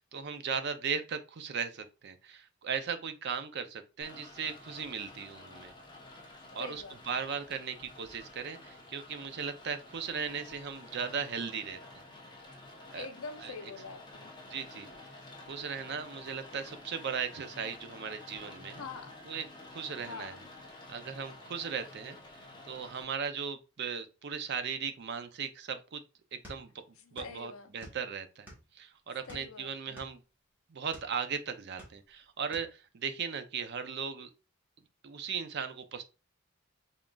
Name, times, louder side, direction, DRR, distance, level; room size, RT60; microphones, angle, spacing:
voice 1, 0.0-5.7 6.5-12.0 12.9-13.1 13.4-13.5 14.5-14.9 15.5-18.8 19.3-19.4 19.7-20.3 20.9-22.2 22.6-26.0 26.5-26.7 27.1-28.5 28.7-30.2 30.7-34.3 35.0-36.0, right 6 dB, 50° right, 0.5 m, -37 dB
Rain, 4.0-23.0, left 2 dB, 20° left, 0.7 m, -51 dB
voice 2, 6.6-6.9 12.6-14.3 18.8-19.2 20.1-20.5 27.0-27.9 29.3-30.0, left 4 dB, 80° left, 0.6 m, -45 dB
sound 1, 26.4-27.4 27.6-28.8 29.3-31.1 31.6-32.2 32.5-32.7, equal, 10° right, 1.4 m, -51 dB
3.7 x 3.6 x 2.3 m
head